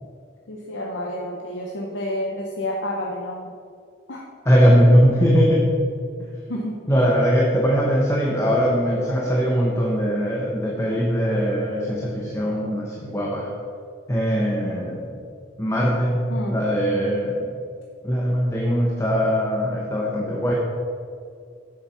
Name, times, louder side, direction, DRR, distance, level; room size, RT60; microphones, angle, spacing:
voice 1, 0.5-3.5 4.1-4.2 6.5-6.8 16.3-16.6, left 1 dB, 85° left, -1 dB, 0.9 m, -29 dB
voice 2, 4.4-5.7 6.9-13.5 14.1-15.2 15.6-16.2 16.5-17.5 18.0-20.5, equal, 15° left, -3 dB, 1.0 m, -20 dB
7.4 x 7.2 x 5.8 m, 2.3 s
head